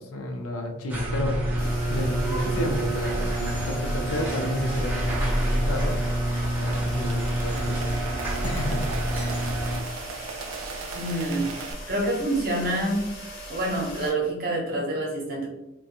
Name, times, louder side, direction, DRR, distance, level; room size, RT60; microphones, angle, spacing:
voice 1, 0.0-1.4 1.9-6.0 6.6-7.8 8.4-8.9, left 1 dB, 90° left, 3 dB, 0.5 m, -31 dB
sound 1, 0.9-9.8, right 1 dB, 10° right, 0.5 m, -27 dB
sound 2, 1.6-14.1, equal, 45° left, 0.6 m, -40 dB
sound 3, 6.2-11.7, right 5 dB, 75° right, 0.3 m, -39 dB
voice 2, 10.9-11.5 11.9-13.0 13.5-15.5, right 1 dB, 45° right, -1 dB, 0.7 m, -27 dB
2.5 x 2.2 x 2.7 m, 0.92 s
head